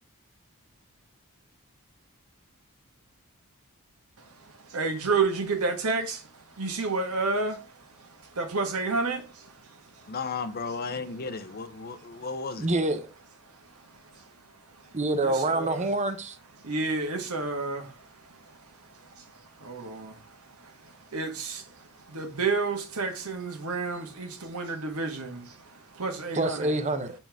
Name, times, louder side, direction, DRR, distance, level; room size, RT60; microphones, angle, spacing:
voice 1, 4.7-6.2 6.6-7.6 8.3-9.5 15.2-15.8 16.6-17.9 19.2-19.3 19.6-20.2 21.1-21.6 22.1-25.5 25.9-26.7, right 4 dB, 80° right, 1.4 m, -30 dB
voice 2, 10.1-12.7, left 4 dB, 45° left, 0.7 m, -34 dB
voice 3, 12.6-13.1 14.9-16.4 26.3-27.1, right 2 dB, 30° right, 0.8 m, -26 dB
7.6 x 4.4 x 3.5 m
head